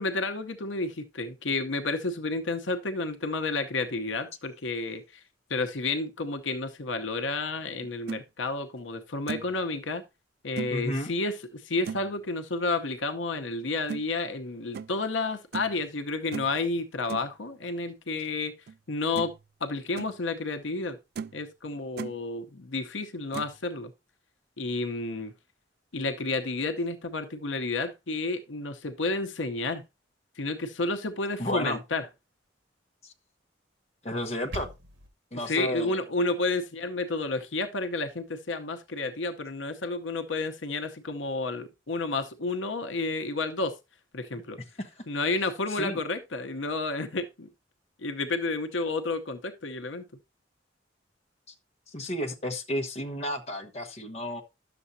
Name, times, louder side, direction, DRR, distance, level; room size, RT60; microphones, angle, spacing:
voice 1, 0.0-5.2 5.5-10.0 10.4-18.5 18.9-19.3 19.6-21.0 21.3-23.9 24.6-25.3 25.9-29.8 30.4-32.1 35.3-43.8 44.1-44.6 45.1-47.5 48.0-50.1, left 3 dB, 85° left, 0.9 m, -31 dB
sound 1, 7.8-8.2 8.8-8.9 9.3-9.6 10.6-10.8 11.9-12.1 13.9-14.0 14.7-15.0 15.5-15.8 16.3-16.6 17.1-17.3 18.7-18.8 19.1-19.4 19.8-20.1 20.7-20.8 21.2-21.4 21.7-22.2 23.3-23.6, right 6 dB, 55° right, 0.3 m, -37 dB
voice 2, 10.7-11.1 31.4-31.8 34.0-34.7 35.3-36.0 45.8-46.0 51.9-54.4, equal, 35° left, 1.1 m, -32 dB
sound 2, 34.1-35.1, right 1 dB, 80° right, 1.7 m, -41 dB
11.0 x 6.9 x 2.7 m
head